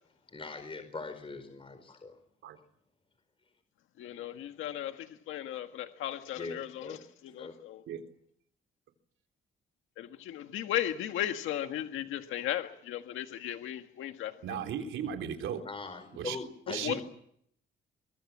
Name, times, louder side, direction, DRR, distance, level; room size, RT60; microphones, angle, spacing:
voice 1, 0.3-2.2 6.4-7.5 15.6-17.0, left 3 dB, 25° left, 8 dB, 4.6 m, -42 dB
voice 2, 4.0-7.8 10.0-14.6 16.7-17.0, left 11 dB, 85° left, 6 dB, 1.7 m, -36 dB
voice 3, 14.4-15.6 16.2-16.4 16.7-17.0, right 8 dB, 80° right, 4 dB, 3.7 m, -36 dB
24.5 x 22.5 x 7.4 m, 0.69 s
cardioid pair, 90°, 20 cm